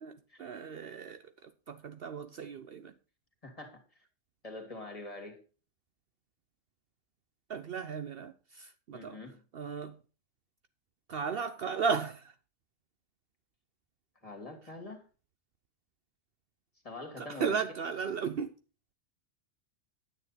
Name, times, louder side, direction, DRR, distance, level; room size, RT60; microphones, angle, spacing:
voice 1, 0.0-2.9 7.5-9.2 9.5-10.0 11.1-12.3 17.2-18.5, right 6 dB, 60° right, 0.8 m, -35 dB
voice 2, 3.4-3.8 4.4-5.4 8.9-9.4 14.2-15.0 16.8-17.6, left 2 dB, 30° left, 2.6 m, -44 dB
10.0 x 9.1 x 4.1 m
omnidirectional pair, 1.2 m